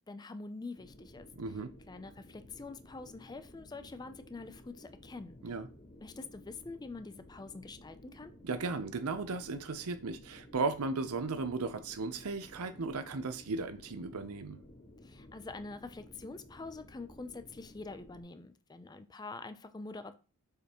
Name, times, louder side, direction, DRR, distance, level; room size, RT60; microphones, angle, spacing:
voice 1, 0.1-1.6 1.9-5.6 6.0-8.3 15.0-20.1, left 3 dB, 20° left, 0.4 m, -45 dB
sound 1, 0.7-18.2, left 1 dB, 35° left, 2.8 m, -55 dB
voice 2, 1.4-1.7 5.4-5.7 8.4-14.6, right 3 dB, 85° right, 0.7 m, -36 dB
6.7 x 5.1 x 3.0 m
head